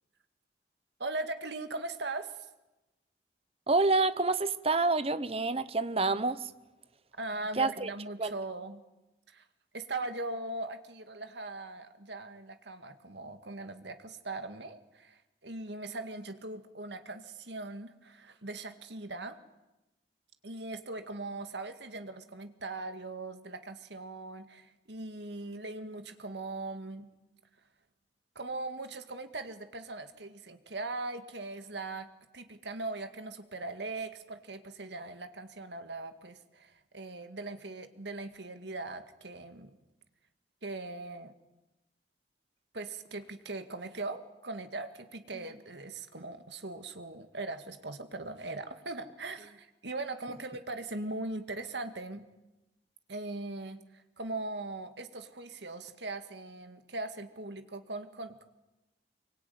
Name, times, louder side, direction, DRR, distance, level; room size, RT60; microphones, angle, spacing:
voice 1, 1.0-2.5 7.2-8.8 9.3-9.4 9.7-19.4 20.4-27.1 28.4-32.1 32.3-39.8 40.6-41.4 42.7-52.3 53.1-58.4, right 2 dB, 70° right, 2.0 m, -40 dB
voice 2, 3.7-6.5 7.6-7.9 8.2-8.3, right 3 dB, 30° right, 0.9 m, -28 dB
24.5 x 23.5 x 9.4 m
head